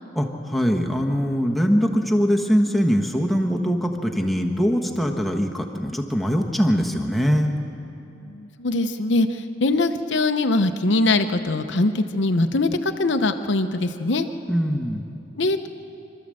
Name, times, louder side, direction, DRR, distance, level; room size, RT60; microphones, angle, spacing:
voice 1, 0.1-7.5 14.5-15.0, equal, ahead, 1 dB, 1.3 m, -22 dB
voice 2, 8.2-14.3 15.3-15.7, left 2 dB, 65° left, 8 dB, 0.8 m, -22 dB
26.0 x 13.0 x 7.7 m, 2.9 s
head